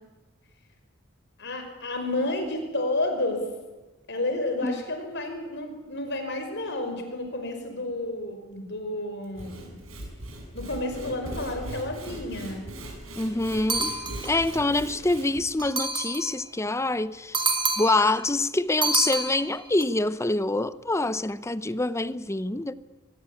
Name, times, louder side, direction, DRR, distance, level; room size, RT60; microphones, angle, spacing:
voice 1, 1.4-3.5 4.1-9.8 10.5-12.7, left 2 dB, 55° left, 5.4 m, -31 dB
Sawing / Wood, 9.2-15.4, right 1 dB, 80° right, 7.3 m, -39 dB
voice 2, 13.2-13.9 14.2-17.5 17.8-22.7, left 2 dB, 15° left, 0.7 m, -26 dB
sound 1, 13.7-14.5 15.6-16.4 17.3-18.1 18.8-19.8, right 3 dB, 25° right, 2.7 m, -28 dB
24.0 x 21.0 x 8.6 m
head